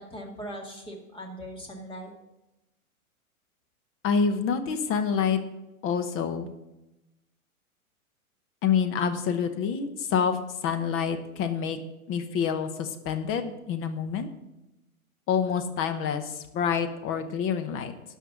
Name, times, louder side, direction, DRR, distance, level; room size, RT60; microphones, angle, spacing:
voice 1, 0.0-2.1, equal, 10° left, 1 dB, 2.1 m, -40 dB
voice 2, 4.0-5.4 5.8-6.5 8.6-11.8 12.1-14.3 15.3-17.9, left 6 dB, 30° left, 8 dB, 1.0 m, -27 dB
12.0 x 5.5 x 6.1 m, 0.95 s
hypercardioid pair, 120°, 44 cm